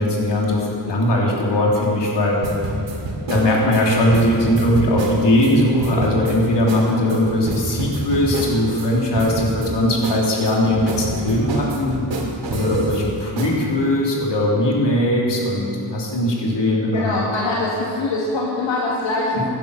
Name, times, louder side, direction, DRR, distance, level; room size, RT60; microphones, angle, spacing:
voice 1, 0.0-2.4 3.2-12.0 12.5-17.2 19.3-19.4, left 1 dB, 70° left, -2 dB, 3.4 m, -19 dB
sound 1, 2.4-5.5 5.8-6.4 6.7-6.8 7.1-8.9 9.2-9.7 10.0-13.0 13.4-13.6, right 2 dB, 90° right, 2.6 m, -27 dB
voice 2, 16.9-19.5, left 2 dB, 90° left, -4 dB, 2.1 m, -23 dB
16.5 x 10.5 x 6.6 m, 2.6 s
wide cardioid pair, 110°, 43 cm